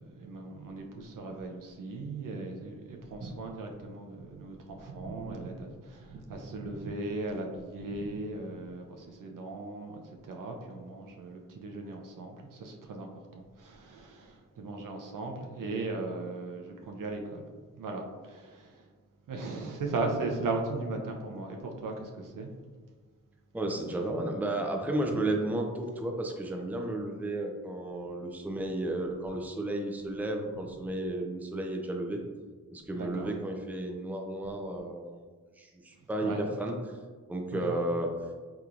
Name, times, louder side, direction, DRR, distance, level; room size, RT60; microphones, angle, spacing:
voice 1, 0.0-17.4 17.7-18.8 19.3-22.5 25.1-25.2 32.9-33.3 36.2-36.4 37.5-37.8, right 3 dB, 65° right, 2 dB, 0.6 m, -37 dB
voice 2, 23.5-32.2 32.7-35.3 35.6-37.0 37.3-38.1, right 1 dB, 5° right, 2 dB, 0.5 m, -33 dB
3.5 x 2.9 x 2.4 m, 1.5 s
cardioid pair, 50°, 34 cm